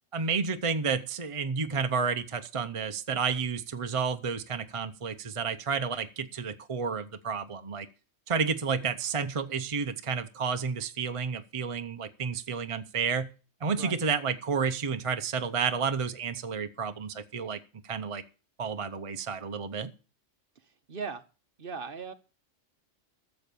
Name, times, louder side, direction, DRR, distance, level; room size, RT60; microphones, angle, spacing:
voice 1, 0.1-7.9 8.3-13.3 13.6-18.2 18.6-19.9, right 5 dB, 35° right, 9 dB, 0.7 m, -31 dB
voice 2, 20.6-21.2 21.6-22.1, right 5 dB, 50° right, 11 dB, 1.1 m, -38 dB
14.0 x 7.1 x 6.8 m, 0.35 s
omnidirectional pair, 1.3 m